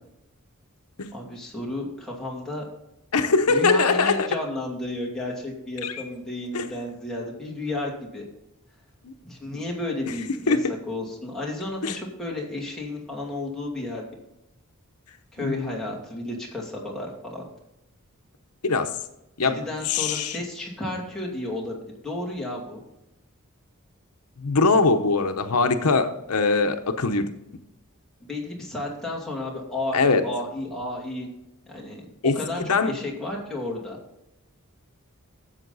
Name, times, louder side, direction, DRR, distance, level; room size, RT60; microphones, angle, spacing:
voice 1, 1.1-2.7 3.5-8.3 9.2-10.6 10.9-14.1 15.3-17.4 19.4-22.8 28.2-31.3 31.7-32.0 32.3-34.0, left 2 dB, ahead, -3 dB, 2.5 m, -32 dB
voice 2, 3.1-4.3 5.8-5.9 6.5-6.7 9.0-9.1 9.5-9.6 10.5-10.7 11.8-11.9 15.4-15.7 18.6-18.9 19.4-19.6 19.9-20.4 24.4-27.3 29.9-30.2 32.2-32.9, left 4 dB, 80° left, 7 dB, 0.8 m, -22 dB
12.5 x 7.6 x 4.0 m, 0.87 s
head